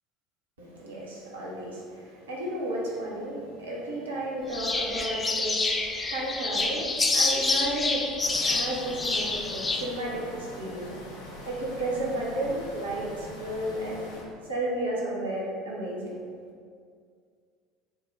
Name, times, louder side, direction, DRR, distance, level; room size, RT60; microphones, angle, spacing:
voice 1, 0.6-8.2 8.4-11.0 11.5-14.1 14.5-16.2, right 1 dB, 75° right, -5 dB, 0.7 m, -33 dB
sound 1, 4.5-9.8, left 3 dB, 20° left, 0.3 m, -27 dB
sound 2, 8.2-14.2, equal, 75° left, 0.9 m, -43 dB
4.7 x 2.0 x 3.8 m, 2.1 s
figure-of-eight pair, 70°, 0 cm